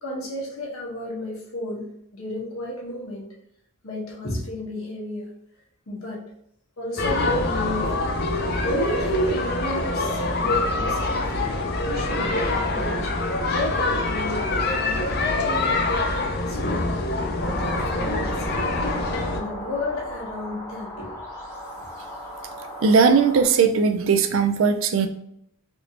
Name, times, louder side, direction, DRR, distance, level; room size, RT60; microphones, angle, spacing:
voice 1, 0.0-3.3 3.8-5.3 5.9-6.3 6.8-11.5 11.9-13.1 13.5-14.5 14.7-17.0 17.4-18.7 19.3-21.2, equal, 80° left, -3 dB, 1.2 m, -32 dB
sound 1, 7.0-19.4, left 2 dB, 45° left, 0.4 m, -25 dB
sound 2, 17.4-23.4, equal, 15° left, 0.9 m, -35 dB
voice 2, 22.8-25.1, right 5 dB, 70° right, 6 dB, 0.4 m, -18 dB
3.4 x 2.5 x 2.8 m, 0.74 s
head